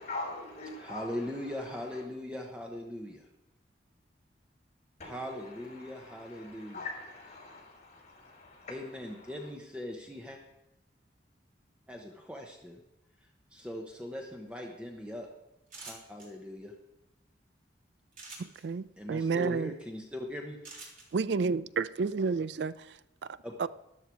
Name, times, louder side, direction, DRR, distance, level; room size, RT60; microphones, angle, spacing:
voice 1, 0.0-1.2 1.6-1.8 5.0-8.8, left 2 dB, 40° left, 5.3 m, -43 dB
voice 2, 0.8-3.3 5.0-6.8 8.7-10.4 11.9-12.8 13.5-15.3 15.8-16.7 19.0-20.6 23.4-23.5, left 1 dB, 5° right, 1.0 m, -40 dB
sound 1, 15.7-16.3 18.1-18.6 20.6-21.0, right 3 dB, 45° right, 3.6 m, -45 dB
voice 3, 18.4-19.7 21.1-23.7, right 4 dB, 70° right, 0.4 m, -31 dB
13.0 x 11.5 x 4.7 m
head